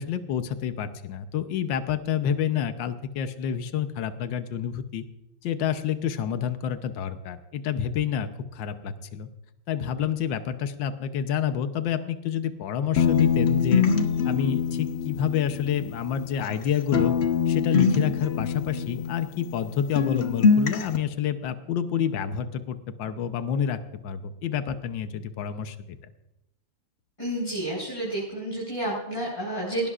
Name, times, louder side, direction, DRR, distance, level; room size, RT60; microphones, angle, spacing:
voice 1, 0.0-5.0 5.4-9.3 9.7-13.9 14.2-17.1 17.5-26.0, left 8 dB, 75° left, 9 dB, 1.6 m, -28 dB
sound 1, 13.0-16.6 16.9-19.7 20.0-21.0, left 6 dB, 45° left, 0.9 m, -24 dB
voice 2, 27.2-29.9, right 1 dB, 15° left, -6 dB, 5.7 m, -30 dB
19.0 x 18.0 x 2.5 m, 0.93 s
omnidirectional pair, 2.1 m